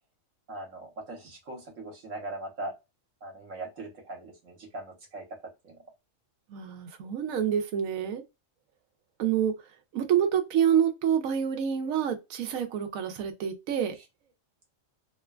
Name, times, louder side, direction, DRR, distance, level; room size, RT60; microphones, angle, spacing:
voice 1, 0.5-2.7 3.2-5.3 5.6-5.8, right 2 dB, 70° right, 1.3 m, -40 dB
voice 2, 6.5-8.2 9.2-9.7 9.9-14.0, right 9 dB, 90° right, 1.0 m, -27 dB
3.0 x 2.2 x 2.2 m
omnidirectional pair, 1.4 m